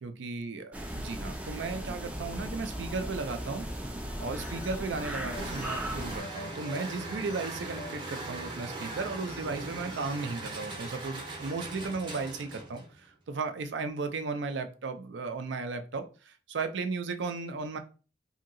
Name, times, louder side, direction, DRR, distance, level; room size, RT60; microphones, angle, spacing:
voice 1, 0.0-3.7 4.2-17.8, right 4 dB, 75° right, 8 dB, 0.4 m, -35 dB
sound 1, 0.7-6.2, right 1 dB, 5° right, 0.3 m, -37 dB
sound 2, 3.9-12.2, left 2 dB, 45° left, 0.5 m, -50 dB
sound 3, 5.3-12.9, right 2 dB, 25° right, 0.7 m, -40 dB
2.8 x 2.7 x 2.5 m, 0.35 s
head